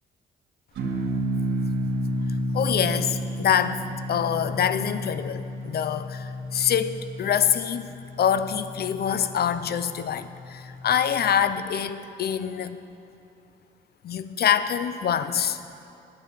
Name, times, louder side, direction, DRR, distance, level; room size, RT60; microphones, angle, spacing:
sound 1, 0.8-11.3, equal, 70° right, 1.8 m, -32 dB
voice 1, 2.5-7.9 8.2-12.8 14.0-15.6, left 8 dB, 50° left, 12 dB, 0.6 m, -25 dB
10.5 x 8.9 x 7.4 m, 2.8 s
cardioid pair, 90°, 20 cm